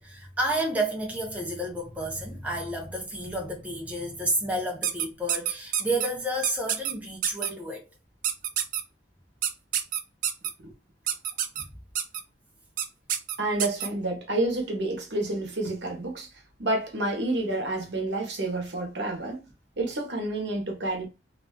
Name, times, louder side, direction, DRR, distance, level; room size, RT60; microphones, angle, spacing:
voice 1, 0.0-7.9, right 1 dB, 10° right, 0.6 m, -30 dB
sound 1, 4.8-6.1 6.4-6.9 7.2-7.5 8.2-8.8 9.4-10.5 11.1-11.6 11.9-12.2 12.8-12.9 13.1-13.9, right 10 dB, 45° right, 0.3 m, -27 dB
voice 2, 13.4-16.3 16.6-19.5 19.8-21.1, right 2 dB, 75° right, 0.8 m, -29 dB
2.5 x 2.3 x 2.2 m
head